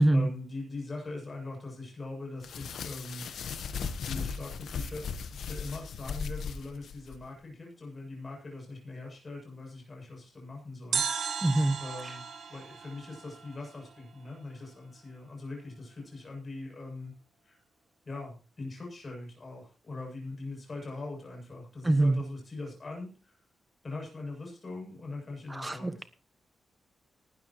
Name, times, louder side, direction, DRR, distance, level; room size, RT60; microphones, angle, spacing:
voice 1, 0.0-3.3 4.0-11.0 11.8-12.2 12.5-17.1 17.4-17.6 18.0-23.4 23.8-26.1, left 2 dB, 30° left, -1 dB, 7.8 m, -41 dB
sound 1, 2.4-7.2, left 6 dB, 75° left, 1.3 m, -37 dB
sound 2, 10.9-14.0 14.3-14.4, right 7 dB, 70° right, 2.2 m, -35 dB
voice 2, 11.4-11.8 21.8-22.2 25.5-26.0, right 1 dB, 15° right, 11 dB, 1.3 m, -24 dB
19.0 x 12.5 x 3.1 m, 0.36 s
wide cardioid pair, 130°, 0 cm